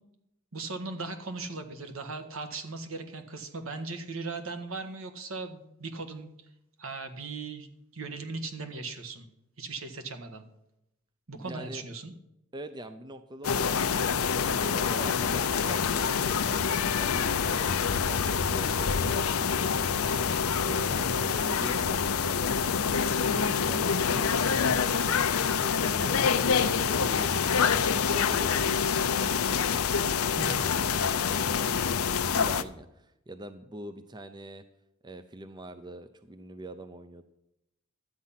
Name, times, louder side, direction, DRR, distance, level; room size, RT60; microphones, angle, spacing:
voice 1, 0.5-6.3 6.8-7.7 7.9-9.3 9.6-10.4 11.3-12.1 30.3-30.7, right 3 dB, 70° right, 7 dB, 1.5 m, -38 dB
voice 2, 11.3-11.8 12.5-19.8 20.6-22.4 23.1-26.3 26.8-34.6 35.0-37.2, right 1 dB, 20° right, 10 dB, 0.5 m, -44 dB
sound 1, 13.4-32.6, left 6 dB, 85° left, 0.6 m, -26 dB
12.5 x 8.4 x 5.8 m, 0.84 s
head